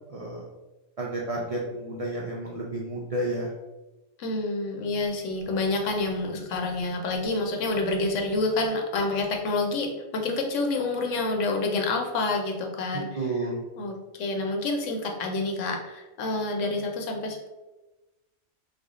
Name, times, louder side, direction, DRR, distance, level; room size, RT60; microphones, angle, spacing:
voice 1, 0.1-0.4 1.0-3.5 13.2-13.6, right 2 dB, 70° right, -3 dB, 0.3 m, -31 dB
voice 2, 4.2-13.1 13.8-17.5, left 2 dB, 85° left, 2 dB, 1.0 m, -28 dB
3.5 x 2.0 x 3.6 m, 1.1 s
omnidirectional pair, 1.2 m